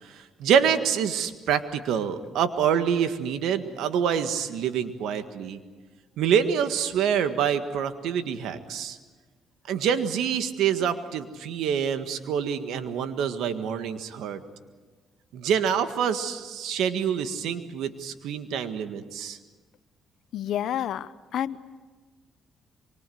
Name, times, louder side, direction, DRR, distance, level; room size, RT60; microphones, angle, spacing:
voice 1, 0.0-5.6 6.2-9.0 9.7-14.4 15.3-19.4, right 8 dB, 85° right, 9 dB, 1.7 m, -26 dB
voice 2, 20.3-21.6, left 10 dB, 75° left, 15 dB, 0.9 m, -29 dB
25.0 x 24.0 x 7.9 m, 1.3 s
cardioid pair, 90°, 0 cm